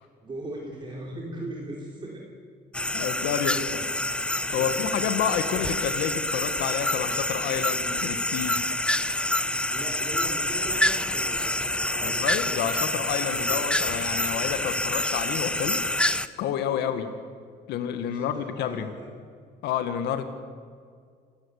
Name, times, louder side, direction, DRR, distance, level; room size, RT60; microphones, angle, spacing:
voice 1, 0.2-2.3 4.6-5.0 9.7-12.3 12.9-13.0 13.4-13.7 16.7-17.1 18.1-19.1, right 1 dB, 30° right, -1 dB, 3.7 m, -39 dB
sound 1, 2.7-16.3, left 1 dB, 5° left, 0.8 m, -27 dB
voice 2, 2.9-3.9 4.5-8.7 12.0-15.8 16.4-17.1 17.7-18.9 19.6-20.2, left 9 dB, 80° left, 9 dB, 1.9 m, -29 dB
27.5 x 15.5 x 8.3 m, 2.1 s
cardioid pair, 110°, 17 cm